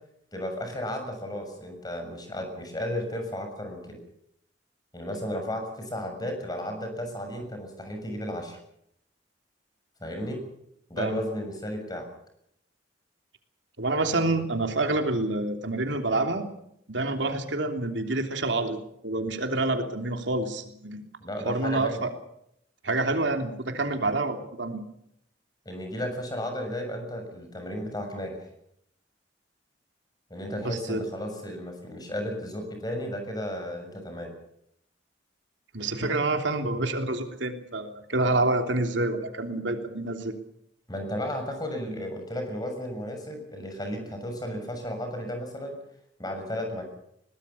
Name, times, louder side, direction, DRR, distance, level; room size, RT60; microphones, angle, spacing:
voice 1, 0.3-4.0 4.9-8.6 10.0-10.4 10.9-12.1 21.2-22.0 25.6-28.5 30.3-34.3 40.9-45.8 46.2-46.8, left 1 dB, 20° left, 5 dB, 6.7 m, -34 dB
voice 2, 13.8-16.4 16.9-18.8 19.0-21.0 21.4-22.1 22.8-24.8 30.6-31.0 35.7-40.3, right 2 dB, 85° right, 5 dB, 3.2 m, -27 dB
22.5 x 19.5 x 7.0 m, 0.74 s
head